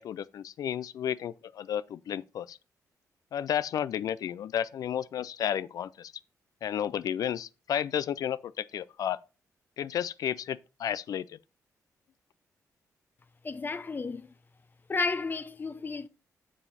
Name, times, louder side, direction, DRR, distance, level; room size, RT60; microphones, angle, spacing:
voice 1, 0.0-2.6 3.3-6.1 6.6-9.2 9.8-11.4, left 9 dB, 70° left, 0.3 m, -32 dB
voice 2, 13.4-14.3 14.9-16.1, left 4 dB, 30° left, 0.6 m, -32 dB
7.3 x 7.0 x 4.0 m
cardioid pair, 95°, 6 cm